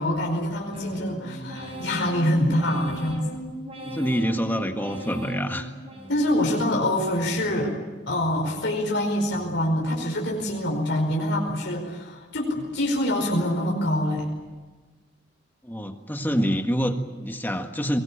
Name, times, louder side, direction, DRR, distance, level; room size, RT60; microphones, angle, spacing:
voice 1, 0.0-3.3 6.1-7.7 8.1-14.3, left 1 dB, 65° left, -1 dB, 5.0 m, -25 dB
sound 1, 0.7-6.6 7.0-7.6 8.1-8.7 9.2-9.8 10.3-10.9 11.4-11.9, right 1 dB, 30° right, 5.4 m, -40 dB
voice 2, 3.8-5.7 15.6-18.0, equal, 10° left, 6 dB, 1.7 m, -26 dB
24.0 x 21.0 x 8.8 m, 1.3 s
head